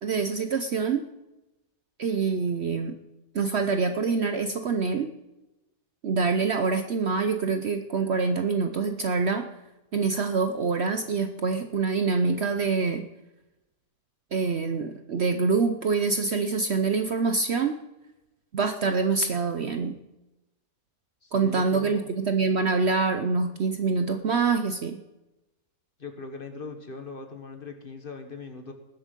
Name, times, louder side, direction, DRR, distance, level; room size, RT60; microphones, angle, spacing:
voice 1, 0.0-1.1 2.0-3.0 3.3-5.1 6.0-9.5 9.9-13.1 14.3-17.8 18.5-20.0 21.3-25.0, right 4 dB, 55° right, 8 dB, 0.9 m, -25 dB
voice 2, 21.2-22.2 26.0-28.7, left 4 dB, 40° left, 6 dB, 1.4 m, -40 dB
20.0 x 7.4 x 5.2 m, 0.96 s
omnidirectional pair, 1.6 m